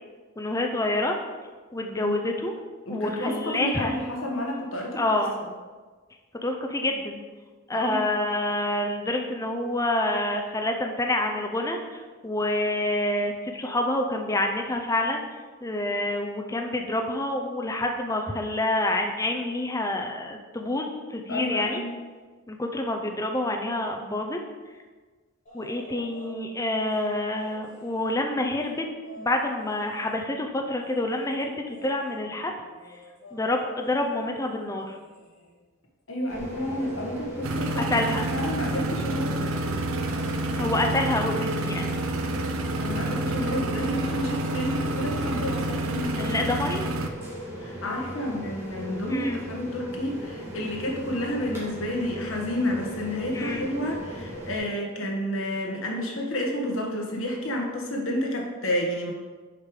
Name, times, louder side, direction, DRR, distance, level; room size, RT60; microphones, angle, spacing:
voice 1, 0.4-1.2 1.7-2.6 2.9-4.0 4.9-5.3 6.4-7.2 7.7-15.2 15.6-21.8 22.5-24.4 25.5-28.8 29.2-32.5 33.3-35.0 37.8-38.3 40.5-41.9 46.2-46.9 49.1-49.4 53.3-53.6, left 1 dB, 15° left, 3 dB, 0.5 m, -27 dB
voice 2, 2.9-5.2 7.7-8.0 21.3-21.9 36.1-39.5 42.8-46.4 47.6-59.1, left 1 dB, 65° left, 0 dB, 1.4 m, -30 dB
sound 1, 25.5-26.4 26.7-30.3 30.8-35.6 36.5-37.0 38.8-39.0 39.3-39.7 40.0-40.7 42.1-42.2, left 1 dB, 35° left, 2.5 m, -49 dB
sound 2, 36.3-54.6, equal, 10° right, 2.2 m, -38 dB
sound 3, 37.4-47.1, right 2 dB, 70° right, 0.6 m, -29 dB
6.7 x 5.2 x 4.8 m, 1.4 s
head